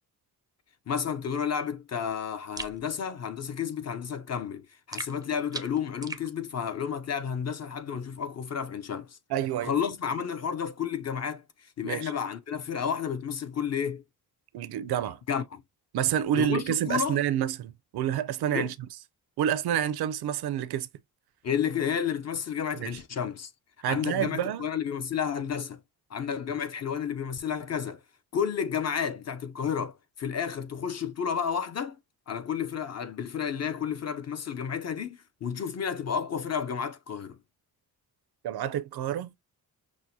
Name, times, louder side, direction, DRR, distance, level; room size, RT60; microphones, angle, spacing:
voice 1, 0.9-9.2 9.6-11.4 11.8-14.0 15.3-15.6 16.4-17.2 18.5-18.7 21.4-23.5 23.9-25.8 26.1-28.0 28.3-32.0 32.3-37.4, left 7 dB, 40° left, 0.6 m, -31 dB
sound 1, 2.6-2.8 4.9-6.3, right 3 dB, 10° right, 0.4 m, -39 dB
voice 2, 9.3-9.7 11.8-12.1 14.5-15.2 15.9-18.9 19.4-20.9 22.7-22.9 23.8-24.7 38.4-39.3, right 10 dB, 75° right, 0.5 m, -28 dB
6.1 x 2.1 x 2.6 m
cardioid pair, 100°, 39 cm